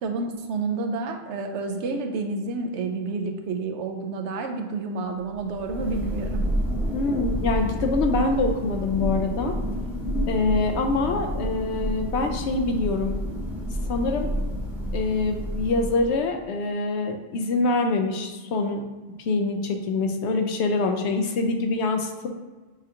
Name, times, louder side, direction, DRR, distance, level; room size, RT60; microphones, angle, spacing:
voice 1, 0.0-6.5, right 3 dB, 75° right, 5 dB, 0.9 m, -29 dB
Thunder, 5.4-16.4, equal, ahead, 0.8 m, -29 dB
voice 2, 6.9-9.6 10.3-13.2 13.9-14.3 14.9-18.8 19.2-22.3, left 3 dB, 75° left, 4 dB, 0.8 m, -25 dB
6.5 x 2.5 x 2.8 m, 1.3 s
omnidirectional pair, 1.2 m